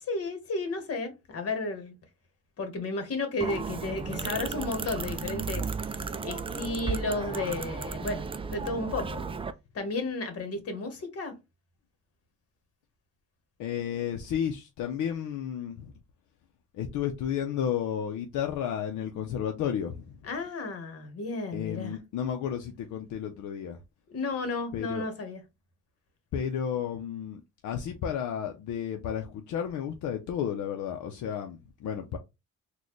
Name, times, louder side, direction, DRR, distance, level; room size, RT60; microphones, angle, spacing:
voice 1, 0.0-1.9 2.6-5.7 6.2-8.2 8.5-9.2 9.7-11.3 20.2-22.0 24.1-25.4, left 3 dB, 50° left, 1.3 m, -33 dB
sound 1, 3.4-9.5, right 5 dB, 20° right, 0.3 m, -34 dB
voice 2, 13.6-15.9 16.7-20.1 21.5-23.8 24.7-25.1 26.3-32.2, left 8 dB, 75° left, 0.6 m, -32 dB
4.0 x 2.3 x 3.1 m
cardioid pair, 90°, 30 cm